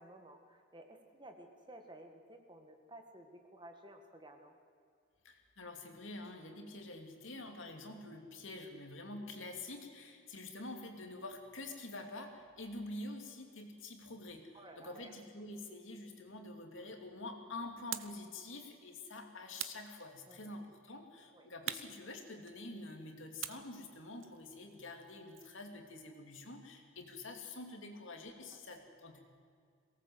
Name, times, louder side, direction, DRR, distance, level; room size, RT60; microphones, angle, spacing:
voice 1, 0.0-4.5 14.5-15.1 20.3-20.5 21.3-21.5, right 1 dB, 20° right, 5 dB, 1.9 m, -54 dB
voice 2, 5.2-29.2, left 2 dB, 65° left, 3 dB, 2.8 m, -47 dB
sound 1, 17.9-18.3 19.6-20.5 21.7-22.8 23.4-25.6, right 12 dB, 60° right, 0.8 m, -45 dB
22.5 x 18.5 x 8.0 m, 2.2 s
head